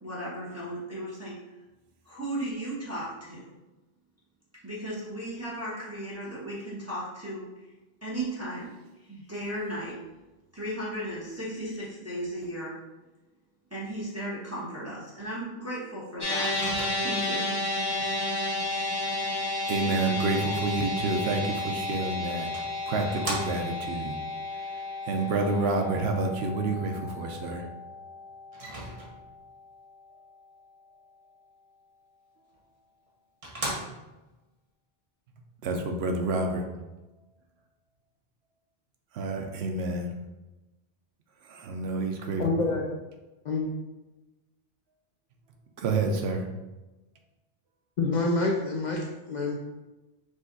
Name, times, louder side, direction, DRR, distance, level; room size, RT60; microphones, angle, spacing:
voice 1, 0.0-1.4 2.0-3.4 4.6-7.4 8.0-8.7 9.0-10.0 10.5-12.7 13.7-16.5 17.0-17.4, right 1 dB, 15° right, -8 dB, 1.1 m, -35 dB
sound 1, 16.2-28.6, left 2 dB, 25° left, 0.8 m, -32 dB
Microwave oven, 16.4-17.3 21.7-21.8 22.5-23.9 28.5-29.4 32.5-32.6 33.1-33.2 33.4-34.3, right 1 dB, 35° right, 0.9 m, -37 dB
voice 2, 19.7-22.5 22.9-24.2 24.5-27.7 35.6-36.6 39.1-40.1 41.4-42.8 45.8-46.5, right 3 dB, 80° right, 3 dB, 0.9 m, -29 dB
voice 3, 42.4-42.8 43.4-43.7 48.0-49.5, left 3 dB, 55° left, 0 dB, 0.6 m, -27 dB
5.0 x 2.4 x 3.9 m, 1.1 s
omnidirectional pair, 1.0 m